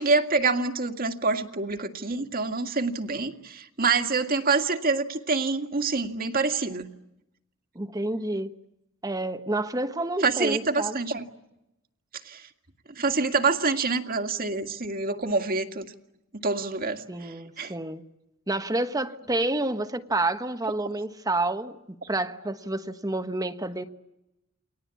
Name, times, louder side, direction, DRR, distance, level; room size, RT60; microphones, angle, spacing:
voice 1, 0.0-6.9 10.2-11.2 12.2-12.5 13.0-15.9 16.4-17.7, right 4 dB, 45° right, 2.1 m, -26 dB
voice 2, 7.7-8.5 9.0-11.0 17.1-18.0 18.5-21.8 22.1-23.8, right 2 dB, 15° right, 1.2 m, -29 dB
29.5 x 22.5 x 8.5 m
head